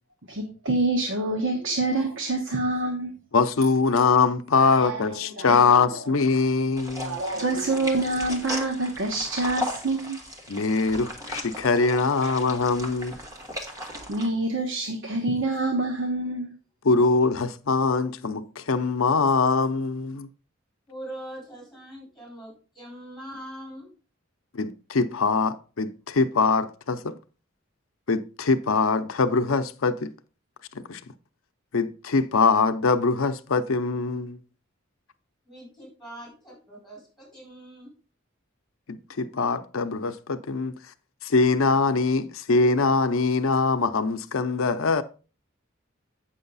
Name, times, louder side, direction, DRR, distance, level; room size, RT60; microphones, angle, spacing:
voice 1, 0.3-3.2 4.5-6.0 7.0-10.2 12.2-12.5 14.1-16.5, right 2 dB, 65° right, 1.1 m, -27 dB
voice 2, 3.3-7.2 10.5-13.1 16.8-20.3 24.5-27.1 28.1-30.1 30.9-31.0 31.7-34.4 38.9-40.7 41.2-45.0, left 4 dB, 80° left, 0.6 m, -23 dB
sound 1, 6.8-14.3, left 1 dB, 15° right, 1.3 m, -36 dB
voice 3, 20.9-23.9 35.5-37.9, right 1 dB, ahead, 4.4 m, -42 dB
8.7 x 6.3 x 4.0 m
head